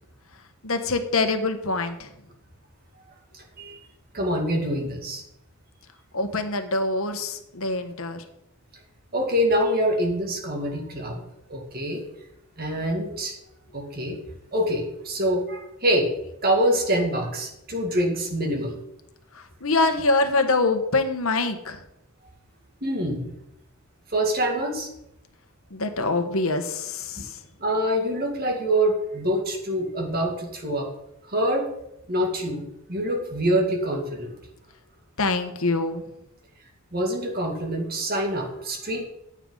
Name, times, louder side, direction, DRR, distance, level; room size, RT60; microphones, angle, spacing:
voice 1, 0.6-2.1 6.1-8.2 14.1-14.2 19.6-21.8 25.7-27.3 35.2-36.0, left 3 dB, 70° left, 7 dB, 1.3 m, -24 dB
voice 2, 4.1-5.2 9.1-11.2 11.5-12.0 12.6-13.4 13.7-14.2 14.5-16.1 16.4-18.8 22.8-23.3 24.1-24.9 27.6-30.9 31.2-31.7 32.1-32.6 32.9-34.4 36.9-39.1, equal, 45° right, 2 dB, 2.3 m, -25 dB
15.0 x 9.0 x 3.9 m, 0.83 s
head